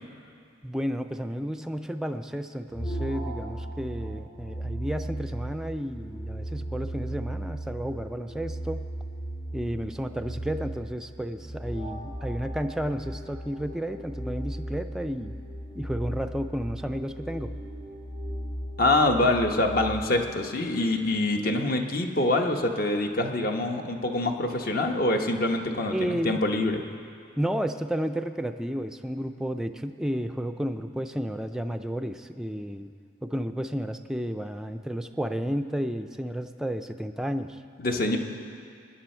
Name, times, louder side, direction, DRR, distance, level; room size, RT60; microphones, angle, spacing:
voice 1, 0.6-8.8 9.5-15.3 15.7-17.5 25.9-26.5 27.4-32.9 33.2-37.6, equal, 5° right, 6 dB, 0.4 m, -32 dB
sound 1, 2.7-20.0, right 1 dB, 75° left, 3.8 m, -36 dB
voice 2, 18.8-26.8 37.8-38.2, left 2 dB, 50° left, 4 dB, 1.0 m, -25 dB
23.5 x 10.5 x 4.4 m, 2.4 s
head